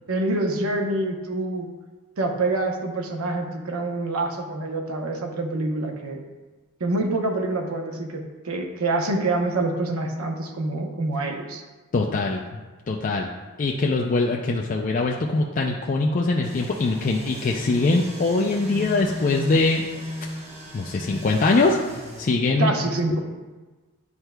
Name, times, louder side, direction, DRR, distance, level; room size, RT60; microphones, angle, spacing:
voice 1, 0.1-1.7 2.2-6.2 6.8-11.6 22.6-23.2, right 2 dB, 80° right, 3 dB, 0.8 m, -26 dB
voice 2, 11.9-12.6 12.9-13.3 13.6-19.8 20.7-21.8 22.2-22.9, left 3 dB, 40° left, 0 dB, 0.4 m, -22 dB
sound 1, 16.4-22.3, equal, 30° right, 0.9 m, -35 dB
9.6 x 4.5 x 2.2 m, 1.3 s
head